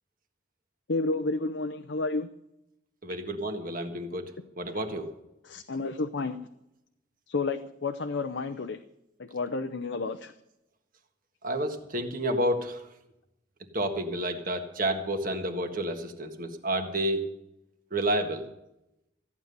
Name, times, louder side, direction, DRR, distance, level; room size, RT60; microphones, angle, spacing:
voice 1, 0.9-2.3 5.4-6.4 7.3-8.8 9.2-10.3, left 3 dB, 70° left, 7 dB, 0.7 m, -31 dB
voice 2, 3.0-5.1 11.4-12.8 13.7-17.2 17.9-18.4, right 1 dB, 45° right, 6 dB, 1.5 m, -30 dB
14.5 x 9.6 x 6.8 m, 0.87 s
head